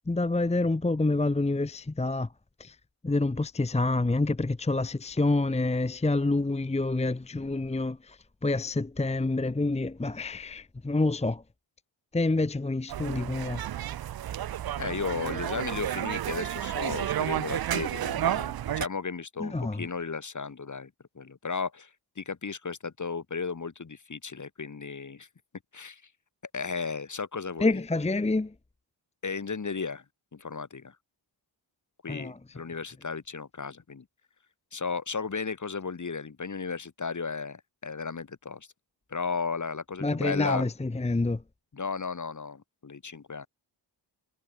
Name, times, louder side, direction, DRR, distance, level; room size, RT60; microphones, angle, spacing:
voice 1, 0.1-2.3 2.6-2.8 3.0-11.4 12.1-13.6 19.4-19.9 27.6-28.5 32.1-32.4 40.0-41.4, left 2 dB, 15° left, 0.9 m, -27 dB
sound 1, 12.9-18.9, right 11 dB, 55° right, 0.5 m, -31 dB
voice 2, 14.8-20.9 21.2-21.9 22.2-25.3 25.7-26.0 26.5-27.8 29.2-30.0 30.3-31.0 32.0-34.1 34.7-38.7 39.1-40.6 41.7-43.5, left 5 dB, 40° left, 2.0 m, -35 dB
cardioid pair, 70°, 46 cm